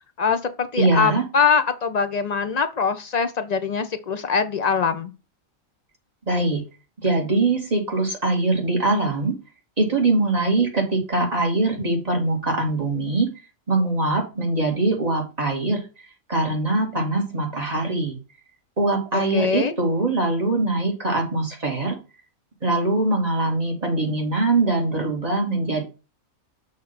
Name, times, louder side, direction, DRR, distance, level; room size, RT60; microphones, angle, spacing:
voice 1, 0.2-5.1 19.1-19.8, left 5 dB, 55° left, 0.4 m, -23 dB
voice 2, 0.8-1.2 6.3-6.6 7.0-9.4 9.8-13.3 13.7-15.8 16.3-18.2 18.8-22.0 22.6-25.8, right 2 dB, 30° right, 2.0 m, -22 dB
6.4 x 2.9 x 5.6 m
omnidirectional pair, 1.4 m